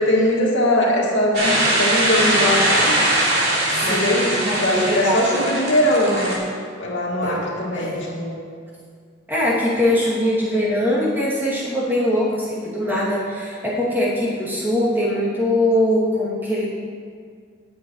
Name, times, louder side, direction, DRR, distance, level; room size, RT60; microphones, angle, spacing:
voice 1, 0.0-3.3 3.8-6.5 6.8-8.4 10.1-10.2, left 1 dB, 75° left, -4 dB, 2.2 m, -21 dB
sound 1, 1.3-6.4, right 1 dB, 55° right, 3.3 m, -21 dB
voice 2, 3.8-5.5 7.2-7.4 7.7-8.0 9.3-16.7, left 1 dB, 10° right, -8 dB, 2.6 m, -22 dB
19.0 x 7.8 x 3.2 m, 2.1 s
head